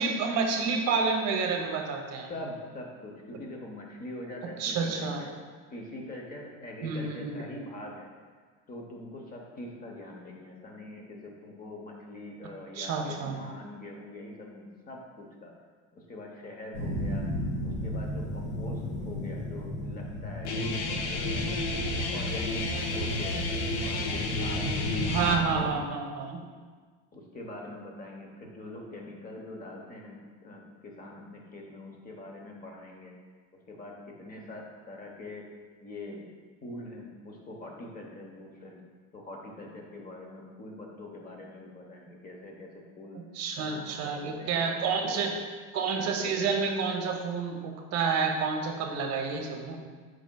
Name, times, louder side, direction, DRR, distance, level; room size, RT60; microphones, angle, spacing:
voice 1, 0.0-2.3 4.6-5.2 6.8-7.4 12.7-13.4 25.0-26.4 43.1-45.4 45.7-49.8, right 5 dB, 50° right, 3 dB, 0.7 m, -29 dB
voice 2, 2.3-5.4 5.7-8.1 8.7-15.5 15.9-17.3 17.6-21.1 21.4-21.9 22.1-24.7 25.3-26.0 27.1-33.1 33.7-35.5 35.8-36.3 36.6-38.8 39.1-43.2 43.6-45.2, left 1 dB, 25° left, 0 dB, 0.8 m, -43 dB
sound 1, 16.7-25.7, equal, 80° left, 1.4 m, -34 dB
Guitar, 20.4-25.4, left 3 dB, 55° left, 0.6 m, -32 dB
5.0 x 4.7 x 2.2 m, 1.5 s
supercardioid pair, 120°, 34 cm